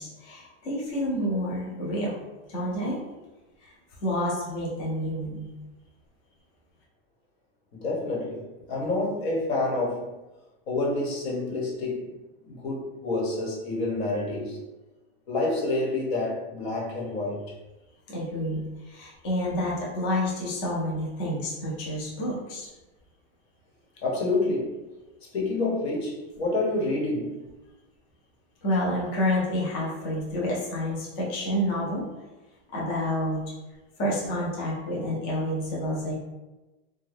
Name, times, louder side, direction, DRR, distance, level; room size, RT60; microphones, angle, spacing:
voice 1, 0.0-2.1 2.5-3.0 4.0-5.5 18.1-22.7 28.6-32.0 32.7-33.4 34.0-36.1, left 1 dB, 25° left, -5 dB, 0.4 m, -29 dB
voice 2, 7.7-10.0 10.7-12.1 12.4-14.6 15.3-17.4 24.0-24.8 25.3-27.4, left 2 dB, 80° left, -3 dB, 1.1 m, -28 dB
2.5 x 2.2 x 3.3 m, 1.1 s
supercardioid pair, 175°, 31 cm